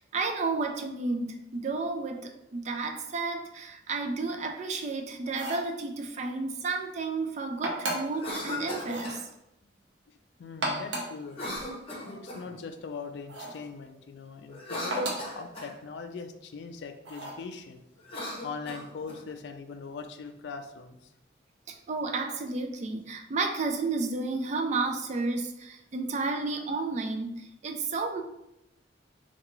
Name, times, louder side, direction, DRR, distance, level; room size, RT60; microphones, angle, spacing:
voice 1, 0.1-9.3 21.7-28.2, right 3 dB, 40° right, 4 dB, 0.3 m, -32 dB
sound 1, 5.2-5.7 7.6-8.2 8.8-9.1 10.4-11.2 13.3-13.6 14.9-15.3 17.0-17.4, right 2 dB, 75° right, 0.8 m, -34 dB
Cough, 8.1-9.2 11.3-12.6 14.5-15.7 18.0-19.2, left 1 dB, 30° left, 0.8 m, -37 dB
voice 2, 10.1-11.6 12.0-17.8 18.2-21.1, left 5 dB, 70° left, 8 dB, 0.3 m, -41 dB
3.5 x 2.3 x 3.0 m, 0.86 s
head